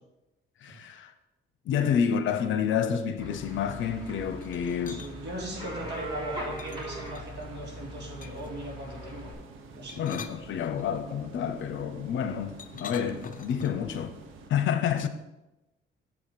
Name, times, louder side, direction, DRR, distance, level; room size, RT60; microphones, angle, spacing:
voice 1, 0.6-1.1 1.6-5.0 10.0-14.1 14.5-15.1, left 8 dB, 75° left, 0.7 m, -29 dB
sound 1, 3.2-9.3, left 1 dB, 25° right, 3.1 m, -42 dB
sound 2, 3.5-14.5, right 4 dB, 85° right, 1.0 m, -49 dB
sound 3, 4.4-5.1 6.6-7.5 8.2-8.6 9.7-11.1 12.6-13.9, left 6 dB, 45° left, 0.7 m, -44 dB
voice 2, 4.8-9.3 9.7-10.1, right 1 dB, 60° right, 2.6 m, -38 dB
7.6 x 5.0 x 5.8 m
cardioid pair, 90°, 20 cm